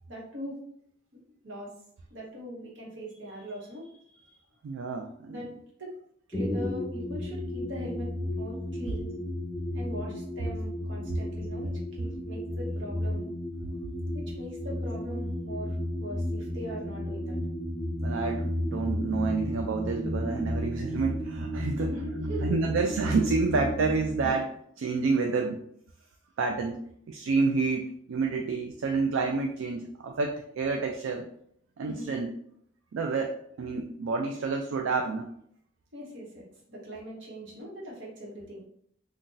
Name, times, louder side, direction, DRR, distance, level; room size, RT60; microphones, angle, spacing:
voice 1, 0.1-0.6 1.4-1.7 2.1-4.3 5.3-5.5 5.8-5.9 6.3-9.2 9.7-13.2 14.1-17.4 21.7-22.6 31.8-32.2 35.9-38.6, equal, 65° right, -3 dB, 1.0 m, -41 dB
voice 2, 4.6-5.4 18.0-22.0 22.4-25.6 26.4-26.8 27.1-31.3 31.8-32.3 32.9-35.3, right 4 dB, 85° right, 3 dB, 0.3 m, -29 dB
sound 1, 6.3-24.3, equal, 15° left, 0.7 m, -33 dB
2.6 x 2.2 x 3.8 m, 0.68 s
head